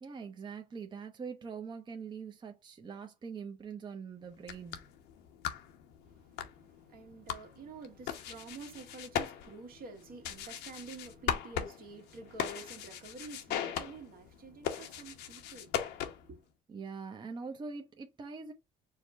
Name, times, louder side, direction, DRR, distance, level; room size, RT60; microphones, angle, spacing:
voice 1, 0.0-4.8 16.7-18.5, right 5 dB, 25° right, 0.6 m, -43 dB
sound 1, 4.3-16.4, left 9 dB, 90° left, 0.9 m, -40 dB
voice 2, 6.0-15.9 16.2-16.4, right 4 dB, 60° right, 1.4 m, -49 dB
4.8 x 2.2 x 4.3 m
cardioid pair, 110°, 17 cm